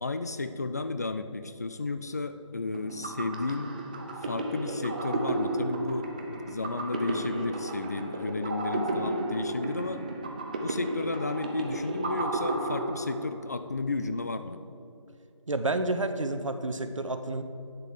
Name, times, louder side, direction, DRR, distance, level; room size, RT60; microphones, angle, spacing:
voice 1, 0.0-3.7 4.2-6.1 6.4-10.0 10.6-14.6, left 3 dB, 30° left, 10 dB, 0.4 m, -33 dB
sound 1, 2.7-13.6, right 2 dB, 15° right, 0.6 m, -33 dB
voice 2, 15.5-17.4, right 2 dB, 75° right, 9 dB, 1.1 m, -30 dB
11.0 x 7.7 x 6.3 m, 2.6 s
figure-of-eight pair, 160°, 16 cm